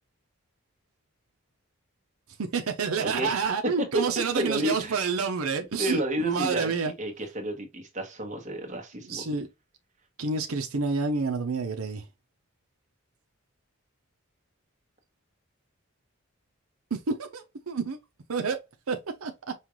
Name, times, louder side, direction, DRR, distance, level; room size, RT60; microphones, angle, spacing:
voice 1, 2.4-6.9 9.0-9.5 10.2-12.1 16.9-18.0 18.3-18.6 18.9-19.5, right 4 dB, 90° right, 0.7 m, -29 dB
voice 2, 3.0-3.5 3.9-4.0 4.3-5.1 5.8-9.2, right 1 dB, 35° right, 1.3 m, -31 dB
5.6 x 2.4 x 3.1 m
head